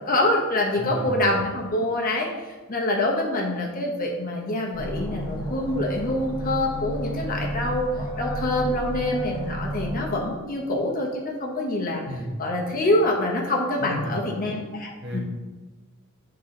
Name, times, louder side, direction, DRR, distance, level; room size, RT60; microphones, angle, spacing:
voice 1, 0.1-7.8 8.2-15.2, left 1 dB, 40° left, 0 dB, 1.0 m, -26 dB
voice 2, 0.8-1.2 12.0-12.3 13.8-14.2 15.0-15.2, equal, 50° right, -2 dB, 1.5 m, -32 dB
sound 1, 4.7-10.6, equal, 15° left, 1.6 m, -32 dB
7.7 x 3.9 x 3.9 m, 1.3 s
head